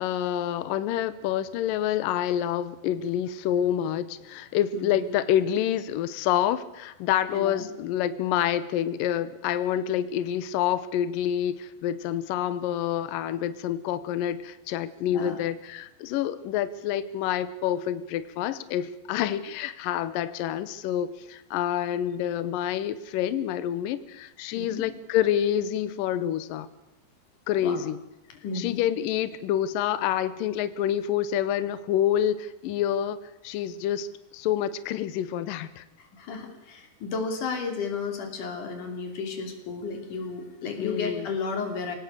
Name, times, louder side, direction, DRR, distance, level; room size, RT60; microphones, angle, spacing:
voice 1, 0.0-26.7 27.5-28.0 28.5-33.2 33.4-34.1 34.3-35.8 40.8-41.3, left 10 dB, 85° left, 15 dB, 1.9 m, -27 dB
voice 2, 4.7-5.1 7.3-7.7 15.1-15.4 24.6-24.8 27.6-27.8 28.4-28.8 36.0-42.0, left 4 dB, 50° left, 5 dB, 4.2 m, -33 dB
25.0 x 18.0 x 6.7 m, 0.95 s
omnidirectional pair, 5.1 m